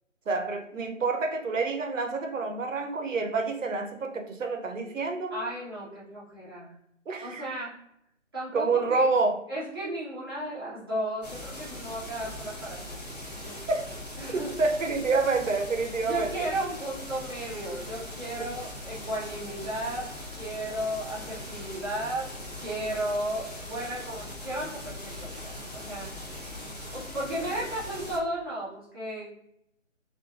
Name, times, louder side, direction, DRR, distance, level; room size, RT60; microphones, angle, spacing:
voice 1, 0.3-5.3 7.1-7.7 8.5-9.4 13.7-13.8 14.3-16.3 18.4-18.5, right 3 dB, 75° right, 4 dB, 0.7 m, -28 dB
voice 2, 5.3-6.7 7.2-7.8 8.3-9.1 9.5-13.0 13.4-13.6 14.2-14.5 16.0-22.3 22.6-26.1 26.9-29.3, right 1 dB, 20° right, -10 dB, 0.7 m, -34 dB
sound 1, 11.2-28.2, left 1 dB, 30° left, 0.7 m, -40 dB
2.9 x 2.4 x 2.3 m, 0.79 s
figure-of-eight pair, 155°, 39 cm